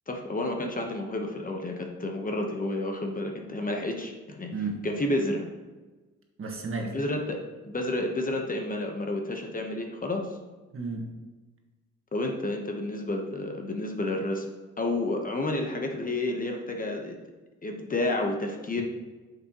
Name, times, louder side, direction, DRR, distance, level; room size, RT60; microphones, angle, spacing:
voice 1, 0.1-4.5 4.8-5.4 6.8-7.4 7.6-10.3 12.1-14.5 14.8-17.2 17.6-18.8, left 2 dB, 30° left, 2 dB, 1.0 m, -30 dB
voice 2, 4.5-4.8 6.4-6.9 10.7-11.1, right 3 dB, 45° right, 2 dB, 1.6 m, -33 dB
8.4 x 6.8 x 3.0 m, 1.2 s
cardioid pair, 90°, 30 cm